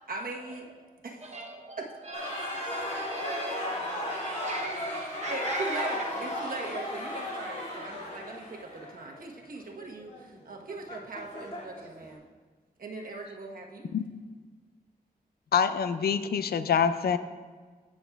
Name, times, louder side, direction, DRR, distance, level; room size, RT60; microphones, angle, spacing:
voice 1, 0.1-0.7 1.0-1.3 1.8-1.9 5.3-12.2 12.8-14.0, right 3 dB, 65° right, 1 dB, 1.1 m, -40 dB
voice 2, 1.2-6.1, right 2 dB, 45° right, 0 dB, 0.7 m, -40 dB
sound 1, 2.1-12.1, left 1 dB, 45° left, 2.3 m, -35 dB
voice 3, 15.5-17.2, left 7 dB, 75° left, 12 dB, 0.4 m, -25 dB
15.5 x 6.2 x 2.3 m, 1.4 s
wide cardioid pair, 80°, 16 cm